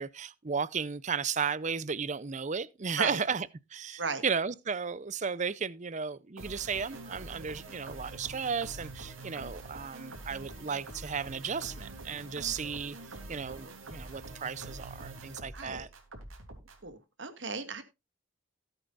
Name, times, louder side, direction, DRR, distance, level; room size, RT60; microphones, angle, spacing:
voice 1, 0.0-13.0 13.3-15.9, right 6 dB, 35° right, 0.6 m, -34 dB
sound 1, 6.4-16.9, right 2 dB, 85° right, 3.2 m, -45 dB
voice 2, 15.5-15.9 16.8-17.8, right 4 dB, 60° right, 1.8 m, -36 dB
17.5 x 8.1 x 2.5 m
head